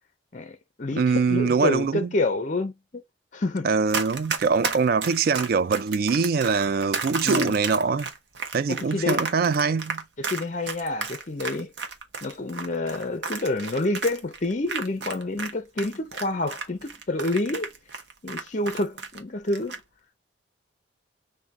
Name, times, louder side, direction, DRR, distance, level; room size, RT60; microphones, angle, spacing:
voice 1, 0.3-3.0 3.3-3.7 7.2-7.6 8.7-9.2 10.2-11.7 12.2-17.7 18.2-19.8, left 2 dB, 40° left, 0.5 m, -28 dB
voice 2, 1.0-2.1 3.6-8.1 8.5-10.0, right 5 dB, 50° right, 0.3 m, -23 dB
Run, 3.9-15.5 15.8-19.2 19.5-19.8, right 5 dB, 70° right, 0.9 m, -32 dB
3.8 x 2.7 x 4.0 m
head